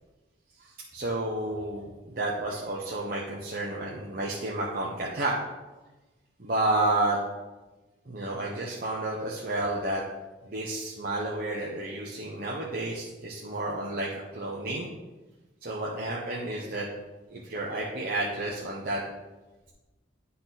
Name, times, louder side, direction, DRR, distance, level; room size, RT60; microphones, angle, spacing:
voice 1, 0.6-5.4 6.4-7.2 8.1-10.0 10.5-14.9 15.6-16.9 17.3-19.0, right 2 dB, 45° right, -4 dB, 0.9 m, -31 dB
10.0 x 4.2 x 4.1 m, 1.2 s
head